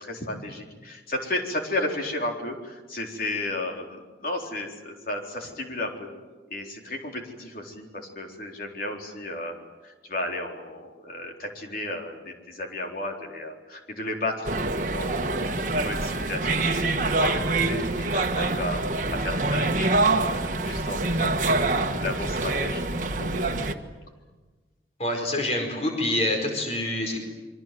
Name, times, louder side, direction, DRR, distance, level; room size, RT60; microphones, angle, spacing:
voice 1, 0.0-6.1 6.5-9.6 9.8-14.5 15.0-22.8 23.2-23.5, left 1 dB, 50° left, 1 dB, 4.1 m, -33 dB
sound 1, 14.4-23.7, right 2 dB, 45° right, 1.5 m, -25 dB
voice 2, 25.0-27.2, left 1 dB, 35° left, 3 dB, 4.6 m, -26 dB
28.0 x 24.0 x 7.8 m, 1.3 s
head